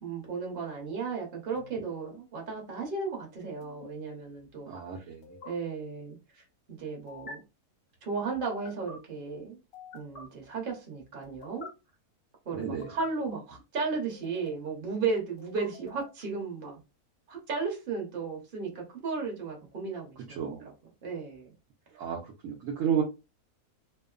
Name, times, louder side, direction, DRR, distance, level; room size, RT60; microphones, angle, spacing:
voice 1, 0.0-4.7 5.0-5.1 5.4-7.4 8.0-9.6 9.9-11.7 12.4-16.8 17.3-20.7 21.0-21.5, right 4 dB, 40° right, 0.9 m, -35 dB
sound 1, 1.6-1.8 3.6-3.9 5.2-5.5 7.1-7.3 8.4-9.0 9.7-10.2 11.2-11.7 12.6-13.1 14.1-14.7 15.4-16.2, left 4 dB, 55° left, 0.7 m, -47 dB
voice 2, 4.7-5.4 12.5-12.9 20.3-20.7 21.9-23.0, right 8 dB, 65° right, 0.9 m, -32 dB
2.9 x 2.0 x 2.3 m
omnidirectional pair, 1.7 m